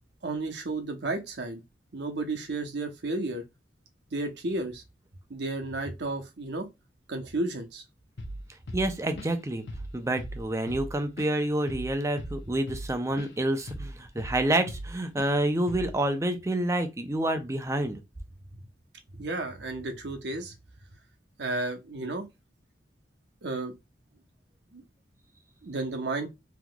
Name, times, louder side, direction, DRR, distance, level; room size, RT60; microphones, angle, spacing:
voice 1, 0.2-1.6 1.9-3.4 4.1-4.8 5.3-6.7 7.1-7.8 18.5-18.6 19.1-20.5 21.4-22.3 23.4-23.8 24.7-24.8 25.6-26.3, right 2 dB, 70° right, 0.8 m, -32 dB
Drum kit / Drum, 8.2-8.4 8.7-9.4 9.7-9.9 10.2-13.3 13.7-14.9 15.2-15.4 15.7-16.0, equal, 75° left, 0.7 m, -38 dB
voice 2, 8.7-9.6 9.9-18.0, right 1 dB, 15° right, 0.5 m, -28 dB
3.7 x 2.9 x 2.2 m
head